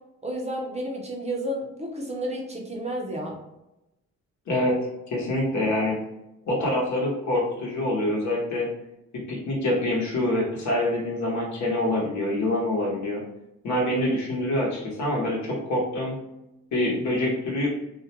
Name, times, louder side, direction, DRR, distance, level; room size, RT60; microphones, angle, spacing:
voice 1, 0.2-3.4, right 1 dB, 20° right, -1 dB, 0.6 m, -31 dB
voice 2, 4.5-4.8 5.1-6.0 6.5-8.7 9.1-13.2 13.6-16.2 16.7-17.7, left 1 dB, 70° left, -3 dB, 1.0 m, -25 dB
2.5 x 2.1 x 2.7 m, 0.91 s
cardioid pair, 90°, 30 cm